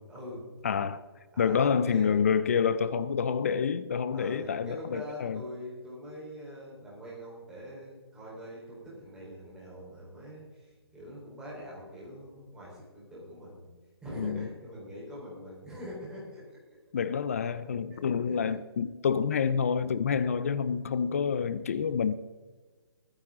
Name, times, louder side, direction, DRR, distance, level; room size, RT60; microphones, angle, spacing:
voice 1, 0.1-0.5 1.3-2.3 4.1-13.7 14.0-16.4 17.9-18.0 18.3-18.4, equal, 5° right, -6 dB, 4.1 m, -43 dB
voice 2, 0.6-1.0 1.4-5.4 14.2-14.5 16.9-22.1, left 6 dB, 35° left, 15 dB, 0.5 m, -28 dB
21.5 x 9.8 x 3.7 m, 1.4 s
hypercardioid pair, 170°, 14 cm